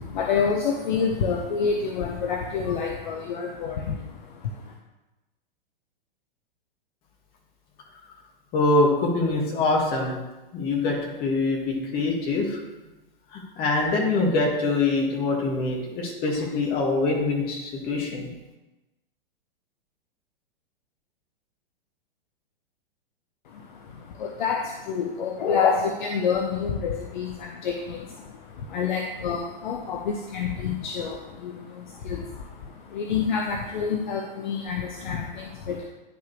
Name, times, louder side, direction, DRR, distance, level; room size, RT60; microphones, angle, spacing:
voice 1, 0.0-4.7 23.4-35.8, left 6 dB, 55° left, 2 dB, 0.8 m, -28 dB
voice 2, 8.5-10.2 10.5-12.6 13.3-18.3, left 3 dB, 30° left, -1 dB, 1.9 m, -24 dB
10.0 x 5.1 x 3.2 m, 1.1 s
figure-of-eight pair, 105°, 29 cm